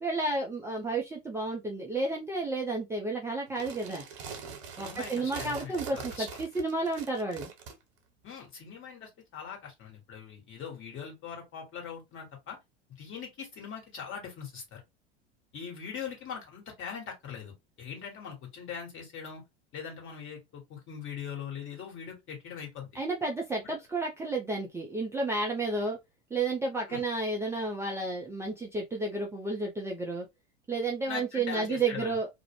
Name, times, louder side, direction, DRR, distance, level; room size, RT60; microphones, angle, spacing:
voice 1, 0.0-4.0 4.8-7.5 22.9-26.0 26.3-30.3 30.7-32.3, right 3 dB, 10° right, 0.4 m, -31 dB
sound 1, 3.5-7.7, right 6 dB, 70° right, 0.8 m, -42 dB
voice 2, 4.8-6.3 8.2-12.6 13.0-14.8 15.5-19.4 19.7-22.9 23.6-23.7 26.9-27.0 31.1-32.1, left 7 dB, 40° left, 1.4 m, -41 dB
2.4 x 2.0 x 3.0 m
hypercardioid pair, 85°, 33 cm